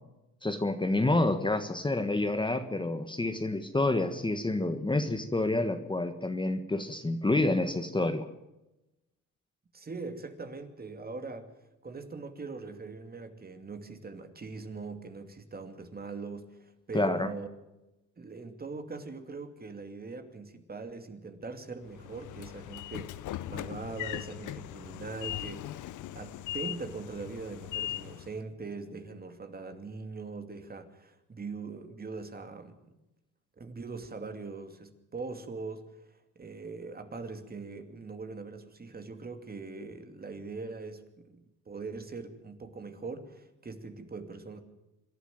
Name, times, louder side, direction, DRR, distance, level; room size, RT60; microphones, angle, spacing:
voice 1, 0.4-8.3 16.9-17.3, left 2 dB, 15° left, 8 dB, 1.5 m, -28 dB
voice 2, 9.7-11.5 11.8-17.5 18.2-33.0 33.6-44.6, right 4 dB, 30° right, 7 dB, 2.6 m, -42 dB
Train / Sliding door, 21.9-28.4, left 13 dB, 80° left, 0.8 m, -39 dB
25.5 x 11.5 x 9.2 m, 0.97 s
cardioid pair, 90°, 30 cm